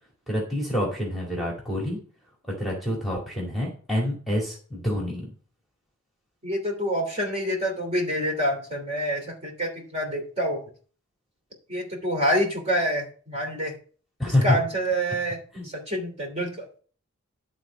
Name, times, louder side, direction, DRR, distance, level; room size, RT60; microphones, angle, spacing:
voice 1, 0.3-2.0 2.5-5.3 14.2-14.4 15.5-15.7, left 1 dB, ahead, -2 dB, 2.1 m, -27 dB
voice 2, 6.4-10.6 11.7-13.7 14.3-16.7, equal, 30° right, 1 dB, 2.9 m, -27 dB
11.5 x 4.0 x 5.9 m, 0.42 s
head